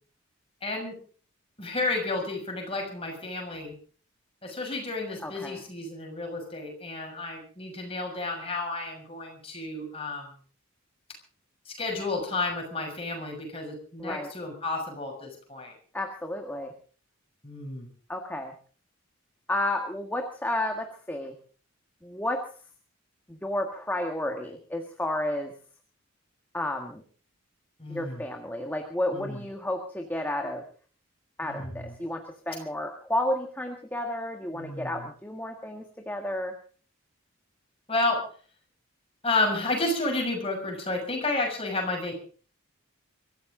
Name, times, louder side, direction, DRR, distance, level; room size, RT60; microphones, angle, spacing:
voice 1, 0.6-1.0 1.6-3.7 4.4-10.3 11.6-15.7 17.4-17.9 27.8-28.2 29.1-29.4 31.4-31.9 34.5-35.0 37.9-38.2 39.2-42.1, left 2 dB, 25° left, 2 dB, 6.6 m, -31 dB
voice 2, 5.2-5.6 14.0-14.3 15.9-16.7 18.1-18.5 19.5-21.3 22.0-22.4 23.3-25.5 26.5-27.0 27.9-30.6 31.4-36.5, left 1 dB, 10° left, 3 dB, 1.7 m, -31 dB
24.0 x 14.5 x 3.9 m, 0.41 s
head